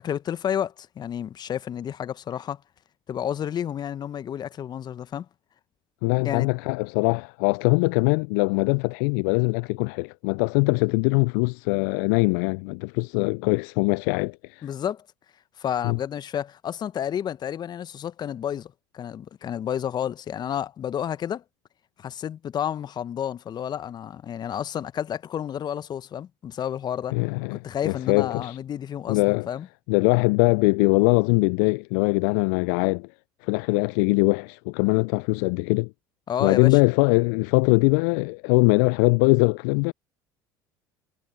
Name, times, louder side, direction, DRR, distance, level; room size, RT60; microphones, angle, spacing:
voice 1, 0.0-2.6 3.1-5.3 6.2-6.5 14.6-15.0 15.6-21.4 22.0-27.1 27.5-29.7 36.3-36.8, left 9 dB, 40° left, 1.2 m, -30 dB
voice 2, 6.0-14.7 15.8-16.0 27.1-28.6 29.1-29.5 29.9-33.1 33.4-35.9 36.4-39.9, left 34 dB, 65° left, 0.4 m, -22 dB
figure-of-eight pair, 65°, 11 cm